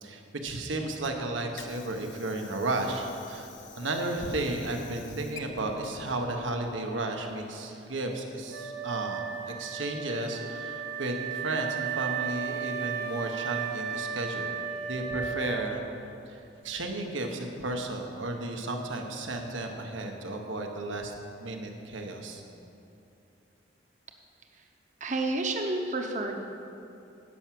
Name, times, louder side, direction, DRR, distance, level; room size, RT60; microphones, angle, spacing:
voice 1, 0.0-3.5 3.8-14.5 14.9-15.8 16.3-21.1 21.4-22.4, right 2 dB, 85° right, 3 dB, 1.3 m, -33 dB
Water / Sink (filling or washing), 1.4-7.1, left 7 dB, 80° left, 0.9 m, -51 dB
Wind instrument woodwind instrument, 8.5-16.1, right 8 dB, 60° right, 1.2 m, -35 dB
voice 2, 25.0-26.4, right 2 dB, 40° right, 3 dB, 0.8 m, -30 dB
12.0 x 6.0 x 7.6 m, 2.7 s
head